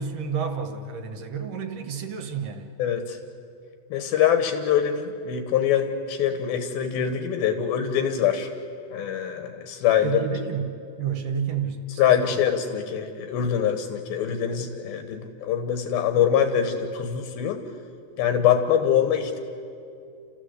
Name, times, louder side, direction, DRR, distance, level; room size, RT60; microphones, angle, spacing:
voice 1, 0.0-2.7 10.0-12.3, right 6 dB, 60° right, 7 dB, 1.7 m, -30 dB
voice 2, 2.8-3.2 3.9-8.5 8.9-10.2 12.0-17.6 18.2-19.4, left 9 dB, 85° left, 7 dB, 3.0 m, -24 dB
30.0 x 15.0 x 8.1 m, 2.5 s
omnidirectional pair, 4.2 m